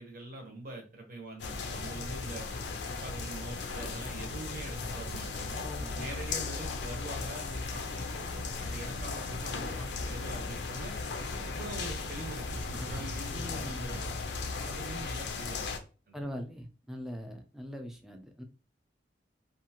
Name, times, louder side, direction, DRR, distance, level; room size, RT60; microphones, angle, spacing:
voice 1, 0.0-2.5 2.9-5.6 6.0-10.9 11.4-12.5 12.8-14.1 14.6-15.7 16.1-16.2, right 1 dB, 50° right, 3 dB, 0.8 m, -44 dB
sound 1, 1.4-15.8, left 4 dB, 65° left, 0.4 m, -37 dB
sound 2, 3.0-14.1, right 3 dB, 85° right, 0.3 m, -49 dB
voice 2, 5.6-6.1 12.7-13.9 16.1-18.4, equal, ahead, 4 dB, 0.4 m, -42 dB
2.6 x 2.3 x 2.8 m, 0.34 s
head